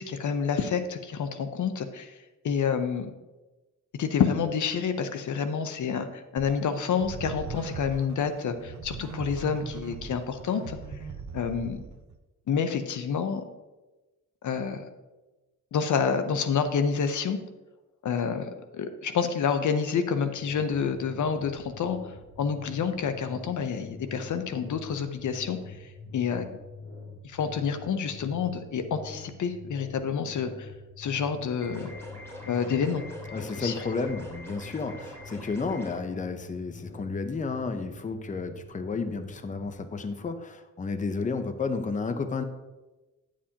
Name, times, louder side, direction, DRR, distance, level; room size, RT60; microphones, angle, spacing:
voice 1, 0.0-2.2 2.4-3.1 4.0-10.8 11.3-11.8 12.5-13.4 14.4-14.8 15.7-17.4 18.0-18.5 18.7-26.4 27.2-30.7 31.0-31.9 32.5-33.0 33.3-33.8, left 6 dB, 65° left, 9 dB, 0.7 m, -28 dB
sound 1, 6.4-12.2, right 5 dB, 65° right, 0.8 m, -40 dB
sound 2, 20.4-39.7, left 3 dB, 45° left, 2.7 m, -46 dB
sound 3, 31.6-36.0, left 1 dB, 10° left, 2.5 m, -44 dB
voice 2, 33.3-42.4, left 4 dB, 25° left, 9 dB, 0.7 m, -32 dB
10.0 x 7.5 x 2.8 m, 1.1 s
cardioid pair, 90°, 31 cm